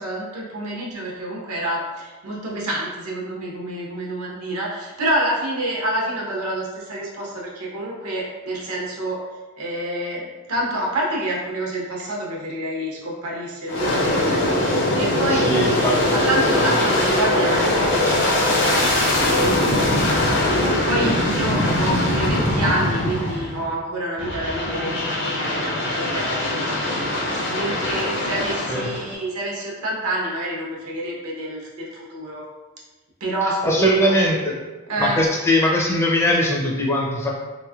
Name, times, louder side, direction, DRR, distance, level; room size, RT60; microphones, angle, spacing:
voice 1, 0.0-9.2 9.6-10.2 10.5-15.7 16.1-19.9 20.6-25.1 25.4-32.5 33.2-34.2 34.9-35.2, right 1 dB, 80° right, -3 dB, 0.8 m, -27 dB
Aircraft, 13.7-23.7 24.2-29.1, left 1 dB, 55° left, 0.7 m, -21 dB
voice 2, 15.3-16.2 28.7-28.9 33.6-34.5 35.0-37.3, equal, 10° left, -3 dB, 0.5 m, -20 dB
3.5 x 3.0 x 2.3 m, 1.2 s
head